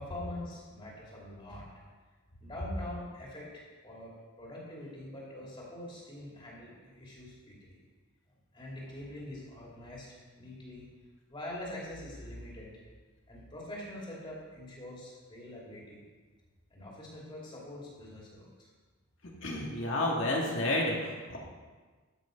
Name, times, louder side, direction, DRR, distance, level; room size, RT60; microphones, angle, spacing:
voice 1, 0.0-1.7 2.4-4.1 4.4-7.8 8.5-10.9 11.3-12.8 13.3-16.0 16.7-18.7, left 1 dB, 25° left, -5 dB, 2.8 m, -44 dB
voice 2, 19.4-21.4, left 1 dB, 65° left, -2 dB, 2.2 m, -30 dB
13.0 x 6.3 x 5.2 m, 1.4 s
head